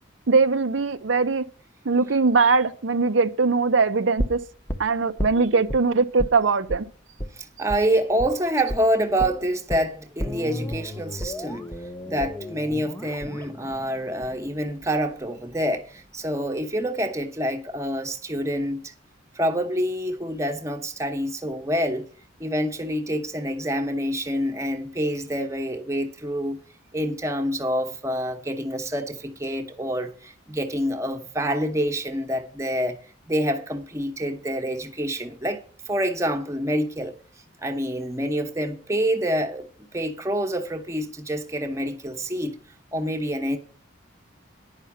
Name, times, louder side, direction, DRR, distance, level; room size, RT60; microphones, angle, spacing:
voice 1, 0.3-1.4 1.9-4.4 4.8-6.9, right 4 dB, 70° right, 0.7 m, -21 dB
sound 1, 4.2-5.8 6.2-6.4 6.7-6.8 7.2-7.3 7.7-7.8 8.2-8.4 8.7-8.8 9.2-15.2 15.5-15.6, equal, 10° left, 0.8 m, -33 dB
voice 2, 7.4-11.6 12.1-18.9 19.3-22.1 22.4-26.6 26.9-33.0 33.3-35.6 35.9-37.1 37.6-39.7 39.9-42.6 42.9-43.6, equal, 15° right, 1.0 m, -27 dB
10.5 x 5.7 x 7.3 m
head